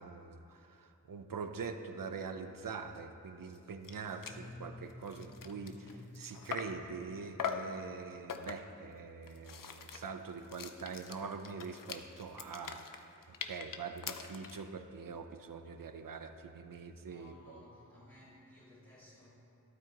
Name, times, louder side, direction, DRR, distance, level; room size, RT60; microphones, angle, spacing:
voice 1, 0.0-17.6, right 5 dB, 75° right, 7 dB, 0.7 m, -44 dB
sound 1, 3.6-3.7 3.8-4.5 4.9-6.9 7.4-7.8 8.3-8.8 9.2-14.7, left 6 dB, 75° left, 0.7 m, -43 dB
sound 2, 4.2-7.9, left 2 dB, 15° left, 1.2 m, -53 dB
voice 2, 17.0-19.3, left 1 dB, 40° left, -11 dB, 2.5 m, -58 dB
13.0 x 12.0 x 3.0 m, 2.8 s
wide cardioid pair, 70°, 34 cm